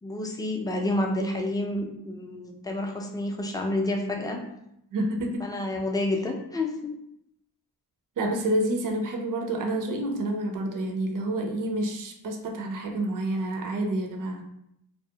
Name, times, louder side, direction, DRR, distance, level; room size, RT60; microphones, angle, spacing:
voice 1, 0.0-4.4 5.4-6.9, left 1 dB, 10° left, 1 dB, 0.3 m, -29 dB
voice 2, 4.9-5.4 8.2-14.4, right 1 dB, 50° right, 2 dB, 0.5 m, -28 dB
2.3 x 2.0 x 2.7 m, 0.78 s
cardioid pair, 50°, 43 cm